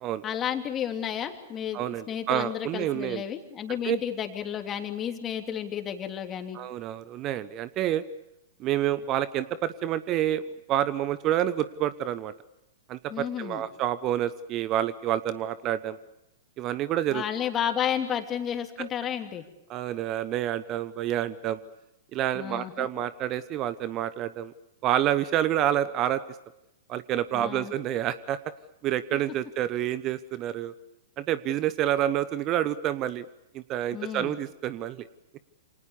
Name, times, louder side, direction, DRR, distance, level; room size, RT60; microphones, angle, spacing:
voice 1, 0.2-6.6 13.1-13.6 17.1-19.4 22.3-22.9 27.3-27.7 33.9-34.4, left 9 dB, 25° left, 6 dB, 3.0 m, -32 dB
voice 2, 1.7-3.2 3.8-4.0 6.5-8.0 8.6-10.4 10.7-12.3 12.9-16.0 16.6-17.2 18.8-18.9 19.7-21.6 22.1-24.5 24.8-26.2 26.9-28.4 28.8-30.7 31.2-33.2 33.5-35.1, right 12 dB, 35° right, 16 dB, 1.0 m, -28 dB
28.5 x 26.5 x 7.1 m, 0.87 s
figure-of-eight pair, 105°, 0 cm